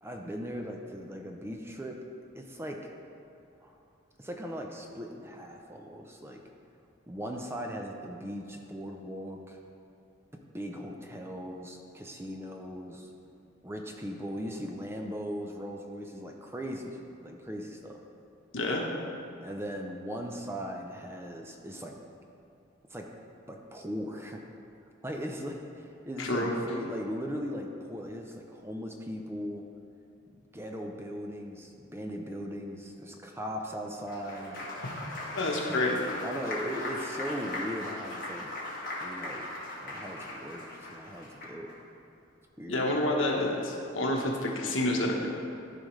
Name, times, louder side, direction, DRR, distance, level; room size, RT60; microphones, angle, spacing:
voice 1, 0.0-2.0 2.4-2.8 3.6-3.8 4.2-6.4 7.1-9.6 10.5-13.1 13.6-18.0 19.4-22.0 22.9-23.1 23.5-24.4 25.0-29.6 30.5-34.6 35.7-35.8 36.2-38.5 39.0-39.5 39.8-41.7 42.6-42.8, equal, 10° right, 1 dB, 0.5 m, -38 dB
voice 2, 26.2-26.5 34.8-34.9 35.3-36.0 42.7-45.3, left 1 dB, 80° left, -1 dB, 1.2 m, -28 dB
Applause, 33.9-41.7, left 1 dB, 45° left, 1.8 m, -39 dB
14.0 x 5.0 x 3.2 m, 2.7 s
head